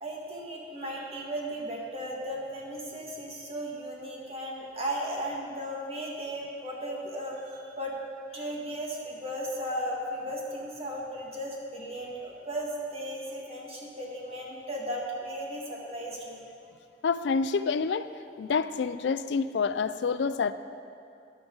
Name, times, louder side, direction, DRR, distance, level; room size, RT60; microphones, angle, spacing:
voice 1, 0.0-8.0 8.3-16.4, equal, 35° right, -3 dB, 1.9 m, -36 dB
voice 2, 17.0-18.1 18.4-20.5, left 5 dB, 75° left, 13 dB, 0.4 m, -27 dB
13.0 x 10.5 x 3.9 m, 2.5 s
head